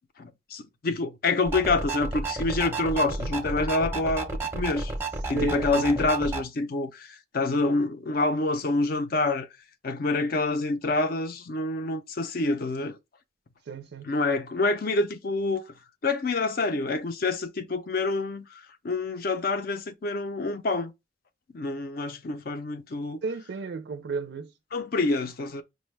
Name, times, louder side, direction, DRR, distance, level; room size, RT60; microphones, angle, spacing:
voice 1, 0.2-4.3 4.5-4.9 5.3-9.5 9.8-13.0 14.0-15.6 16.0-20.9 21.5-23.2 24.7-25.6, left 3 dB, 55° left, 0.5 m, -27 dB
sound 1, 1.4-6.4, right 3 dB, 15° right, 0.5 m, -31 dB
voice 2, 5.3-6.1 13.7-14.1 23.2-24.5, right 4 dB, 70° right, 0.4 m, -34 dB
5.1 x 2.2 x 3.2 m
head